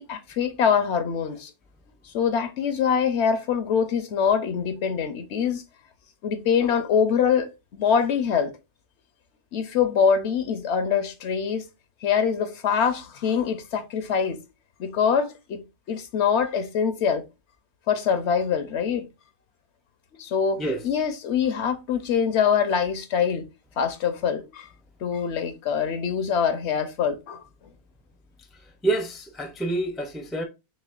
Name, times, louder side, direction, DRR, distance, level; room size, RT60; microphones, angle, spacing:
voice 1, 0.0-1.5 2.1-5.6 6.2-8.5 9.5-11.6 12.0-14.4 14.8-15.6 15.9-17.2 17.9-19.1 20.2-23.5 23.8-24.7 25.0-27.4, left 7 dB, 80° left, 1.0 m, -24 dB
voice 2, 28.8-30.4, right 2 dB, ahead, 0.4 m, -27 dB
6.5 x 2.2 x 2.4 m
omnidirectional pair, 1.1 m